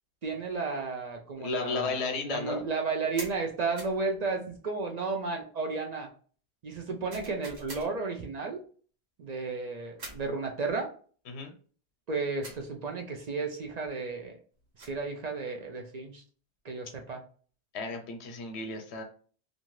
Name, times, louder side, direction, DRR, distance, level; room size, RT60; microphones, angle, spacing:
voice 1, 0.2-6.1 6.6-8.6 9.2-10.9 12.1-14.4 14.8-16.2 16.6-17.2, right 4 dB, 55° right, 3 dB, 0.5 m, -33 dB
voice 2, 1.4-2.6 11.3-11.5 17.7-19.0, left 4 dB, 90° left, 5 dB, 0.9 m, -34 dB
sound 1, 3.1-3.4 3.8-4.0 7.1-7.9 10.0-10.3 12.4-12.6 14.5-15.0, right 2 dB, 90° right, 1.3 m, -43 dB
2.6 x 2.4 x 3.0 m, 0.42 s
omnidirectional pair, 1.1 m